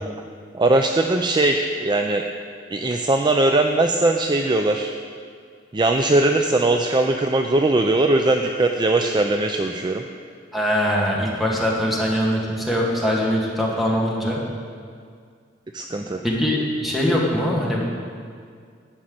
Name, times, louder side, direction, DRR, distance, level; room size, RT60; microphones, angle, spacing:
voice 1, 0.5-2.2 2.7-4.9 5.7-10.0 15.7-16.2, right 2 dB, 25° right, 4 dB, 0.5 m, -20 dB
voice 2, 10.5-14.4 16.2-17.8, equal, ahead, -4 dB, 2.2 m, -22 dB
11.5 x 6.3 x 8.7 m, 2.1 s
head